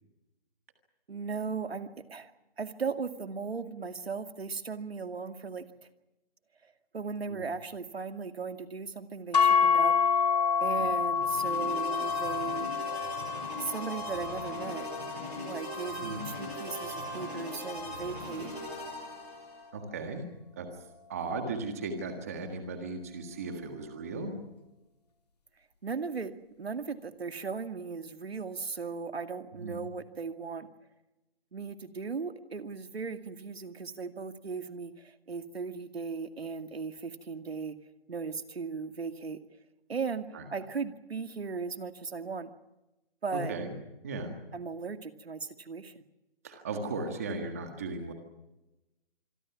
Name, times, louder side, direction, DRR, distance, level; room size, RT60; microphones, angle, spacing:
voice 1, 1.1-2.3 2.6-5.6 6.6-10.3 10.6-12.7 13.6-14.9 15.4-18.5 25.8-30.7 31.5-37.8 38.1-39.4 39.9-42.5 43.2-43.5 44.5-46.0, right 5 dB, 80° right, 8 dB, 2.4 m, -37 dB
sound 1, 9.3-17.6, left 6 dB, 40° left, 2.7 m, -29 dB
sound 2, 11.1-19.6, equal, 10° left, 7.1 m, -40 dB
voice 2, 19.7-20.2 20.5-20.7 21.1-24.3 29.5-29.8 40.3-40.4 43.3-43.7 44.0-44.3 46.4-48.1, right 3 dB, 15° right, 5 dB, 1.7 m, -36 dB
26.5 x 23.5 x 6.0 m, 0.98 s
hypercardioid pair, 180°, 31 cm